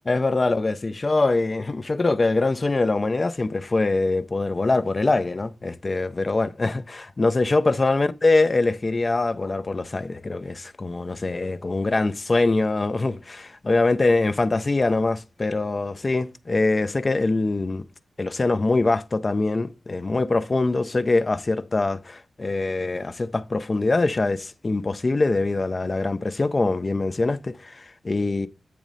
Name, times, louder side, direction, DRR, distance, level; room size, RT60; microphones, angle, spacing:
voice 1, 0.1-17.9 18.2-28.5, left 3 dB, 30° left, 0.4 m, -23 dB
8.5 x 3.1 x 5.2 m
wide cardioid pair, 155°, 0 cm